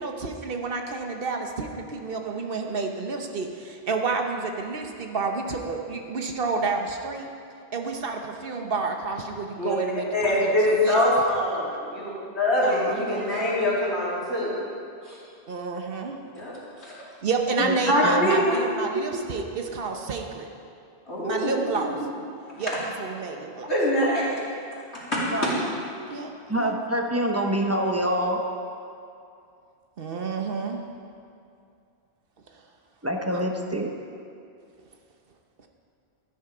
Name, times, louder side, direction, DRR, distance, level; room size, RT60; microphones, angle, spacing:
voice 1, 0.0-7.3 7.7-10.1 10.4-11.1 12.6-13.3 15.5-16.2 17.2-20.5 21.2-22.0 22.6-23.7 25.5-25.7 26.1-26.3 26.6-26.7 30.0-30.8 33.3-33.4, right 4 dB, 60° right, 3 dB, 1.1 m, -30 dB
voice 2, 10.1-14.5 15.0-15.2 16.3-17.0 17.9-18.6 21.1-22.0 23.7-24.4 25.1-25.5, left 1 dB, 85° left, -7 dB, 3.2 m, -24 dB
voice 3, 26.5-28.4 33.0-33.9, right 1 dB, 15° right, 2 dB, 0.9 m, -26 dB
12.5 x 10.0 x 4.9 m, 2.5 s
omnidirectional pair, 1.1 m